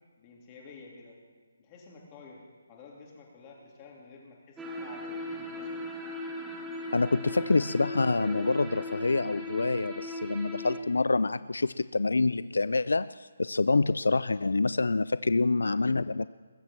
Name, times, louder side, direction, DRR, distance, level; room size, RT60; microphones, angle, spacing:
voice 1, 0.2-1.2 1.6-2.4 2.7-5.8 7.2-7.5, left 4 dB, 25° left, -2 dB, 3.3 m, -50 dB
sound 1, 4.6-10.8, left 1 dB, 5° right, 1.3 m, -38 dB
voice 2, 6.9-16.3, left 3 dB, 85° left, 16 dB, 0.3 m, -26 dB
21.0 x 7.4 x 7.2 m, 1.5 s
hypercardioid pair, 155°, 0 cm